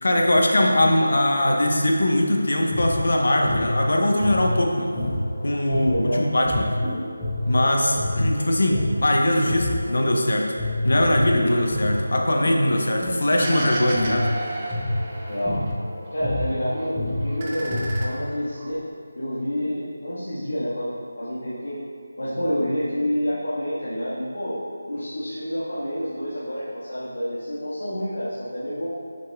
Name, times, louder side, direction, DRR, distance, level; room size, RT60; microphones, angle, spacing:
voice 1, 0.0-4.9 5.4-6.6 7.4-10.6 10.8-14.3, left 1 dB, 65° left, 1 dB, 0.9 m, -21 dB
sound 1, 2.5-10.2 10.6-18.2, left 1 dB, 10° left, 1.1 m, -28 dB
voice 2, 5.9-6.2 15.3-15.6 16.1-17.0 17.2-18.8 19.1-21.8 22.2-24.6 24.9-28.9, equal, 90° left, -10 dB, 1.5 m, -28 dB
sound 2, 13.4-15.7 16.1-16.9 17.2-18.7, right 2 dB, 25° right, 0.6 m, -33 dB
6.8 x 6.4 x 2.3 m, 2.2 s
figure-of-eight pair, 170°, 0 cm